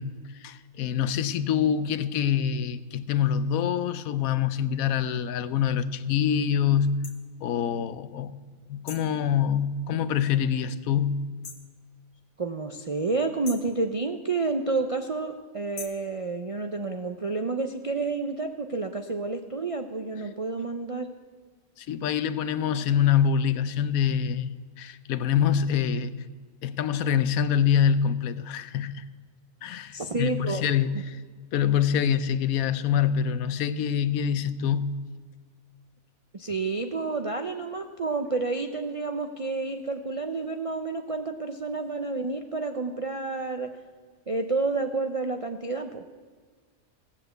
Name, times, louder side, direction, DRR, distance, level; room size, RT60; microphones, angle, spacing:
voice 1, 0.0-7.1 7.4-8.3 8.7-11.3 21.8-26.2 26.6-29.1 29.6-31.2 31.5-35.0, left 8 dB, 80° left, 1.1 m, -25 dB
sound 1, 7.0-7.2 8.9-9.2 11.4-11.7 13.4-13.8 15.8-16.1, left 5 dB, 55° left, 1.3 m, -41 dB
voice 2, 12.4-21.1 29.9-30.6 36.3-43.7 44.3-46.0, right 3 dB, 50° right, 0.4 m, -30 dB
16.0 x 7.5 x 7.8 m
omnidirectional pair, 1.5 m